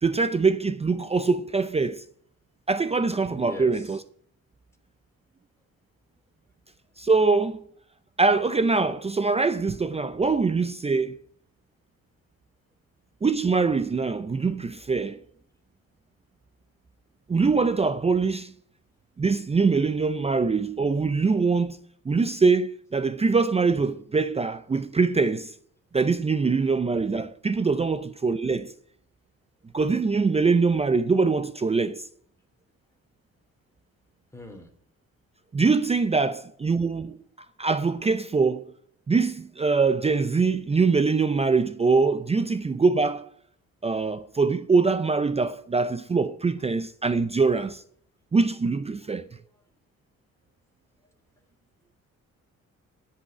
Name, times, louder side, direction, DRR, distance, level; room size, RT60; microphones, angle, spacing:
voice 1, 0.0-2.0 2.7-4.0 7.0-7.6 8.2-11.2 13.2-15.2 17.3-18.5 19.2-21.8 22.1-25.5 25.9-28.7 29.7-32.1 35.5-38.7 39.1-43.3 43.8-47.8 48.3-49.2, right 4 dB, 20° right, 0.5 m, -23 dB
voice 2, 3.3-4.0 34.3-34.7 46.6-46.7 49.0-49.6, left 1 dB, 10° left, 3.0 m, -43 dB
13.5 x 5.6 x 9.4 m
cardioid pair, 90°, 30 cm